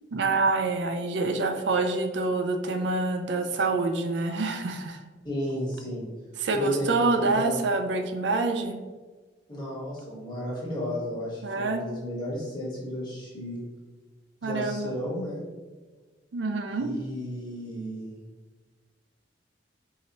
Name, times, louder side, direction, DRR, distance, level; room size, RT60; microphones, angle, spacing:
voice 1, 0.1-5.0 6.4-8.8 11.4-11.8 14.4-14.9 16.3-16.9, right 3 dB, 70° right, 6 dB, 0.4 m, -26 dB
voice 2, 5.2-6.0 6.5-7.6 9.5-13.6 14.4-15.4 16.7-18.1, equal, 25° left, -6 dB, 1.2 m, -33 dB
4.4 x 2.8 x 2.8 m, 1.3 s
head